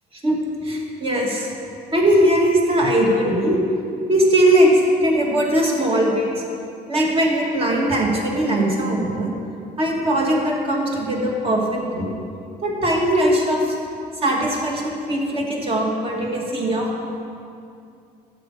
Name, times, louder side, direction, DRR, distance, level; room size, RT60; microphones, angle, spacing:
voice 1, 0.2-1.5 1.9-3.6 4.1-6.4 6.9-9.3 9.8-12.2 12.6-13.8 14.2-16.9, right 1 dB, 35° right, -1 dB, 2.2 m, -20 dB
12.0 x 8.4 x 4.9 m, 2.4 s
cardioid pair, 110°, 17 cm